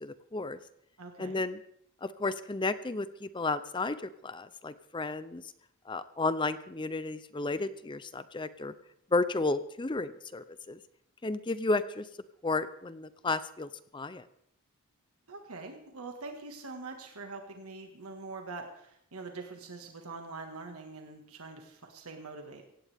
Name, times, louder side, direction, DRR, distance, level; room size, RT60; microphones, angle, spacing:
voice 1, 0.0-0.6 1.2-1.6 2.0-5.4 5.9-8.7 9.1-10.8 11.2-12.1 12.4-14.2, left 3 dB, 20° left, 13 dB, 0.6 m, -33 dB
voice 2, 1.0-1.4 15.3-22.6, right 3 dB, 90° right, 3 dB, 1.8 m, -44 dB
17.0 x 16.5 x 3.5 m, 0.72 s
head